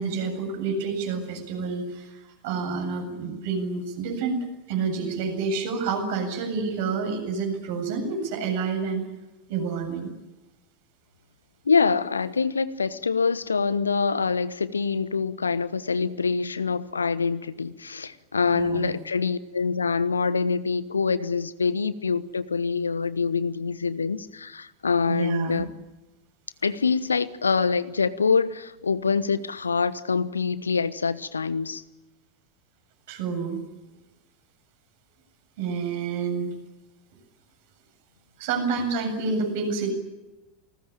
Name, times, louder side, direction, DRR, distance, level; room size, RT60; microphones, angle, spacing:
voice 1, 0.0-9.0 9.5-10.1 18.5-18.9 25.1-25.6 33.1-33.6 35.6-36.5 38.4-39.9, right 5 dB, 55° right, 4 dB, 7.8 m, -28 dB
voice 2, 11.6-25.7 26.6-31.8, left 5 dB, 75° left, 16 dB, 1.1 m, -25 dB
28.0 x 20.0 x 8.7 m, 1.0 s
figure-of-eight pair, 85°, 0 cm